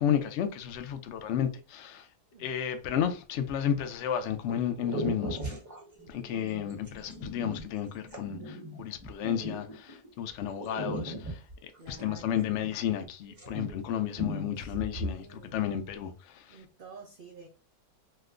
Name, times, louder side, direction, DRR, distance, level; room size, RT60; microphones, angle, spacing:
voice 1, 0.0-2.1 2.4-5.4 6.1-16.6, left 9 dB, 70° left, 0.6 m, -32 dB
voice 2, 2.3-2.7 11.8-12.5 14.6-15.7 16.5-17.5, right 3 dB, 70° right, 0.5 m, -50 dB
sound 1, 3.3-3.8 4.5-4.6 4.8-10.1 10.6-13.0 13.3-13.9 14.1-15.1, equal, 10° right, 1.1 m, -38 dB
2.9 x 2.1 x 3.6 m
omnidirectional pair, 1.7 m